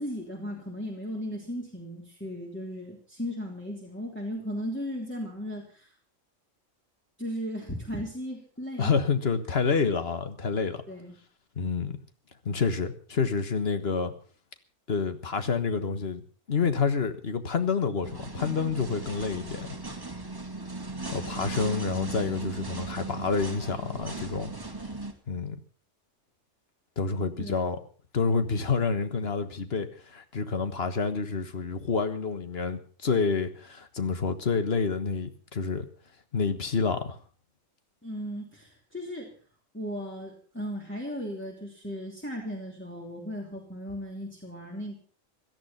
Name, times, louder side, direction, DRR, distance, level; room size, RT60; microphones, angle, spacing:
voice 1, 0.0-5.9 7.2-8.9 10.9-11.2 27.4-27.5 38.0-39.3 39.7-45.0, equal, 10° left, 3.0 m, -36 dB
voice 2, 8.8-10.8 11.6-12.0 12.4-14.1 14.9-16.2 16.5-19.7 21.1-24.5 25.3-25.6 27.0-27.8 28.1-35.8 36.3-37.2, left 5 dB, 50° left, 1.6 m, -28 dB
sound 1, 18.0-25.1, right 3 dB, 15° right, 1.9 m, -37 dB
17.5 x 12.5 x 5.7 m
omnidirectional pair, 1.3 m